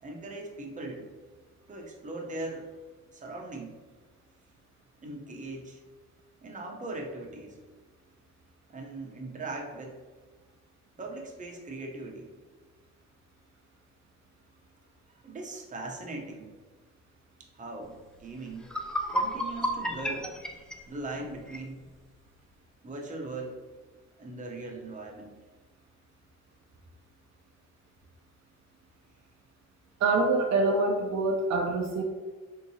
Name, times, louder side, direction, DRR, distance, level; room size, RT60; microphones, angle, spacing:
voice 1, 0.0-1.1 1.7-2.7 3.1-3.7 5.0-5.8 6.4-7.6 8.7-10.0 11.0-12.3 15.1-16.5 17.4-18.7 19.1-20.3 20.9-21.9 22.8-23.6 24.2-25.3, right 2 dB, 25° right, 0 dB, 0.7 m, -39 dB
sound 1, 18.2-18.3 18.6-21.7, equal, 5° left, 0.3 m, -32 dB
voice 2, 30.0-32.0, right 3 dB, 65° right, 1 dB, 0.5 m, -25 dB
3.7 x 2.8 x 2.7 m, 1.4 s
cardioid pair, 90°, 29 cm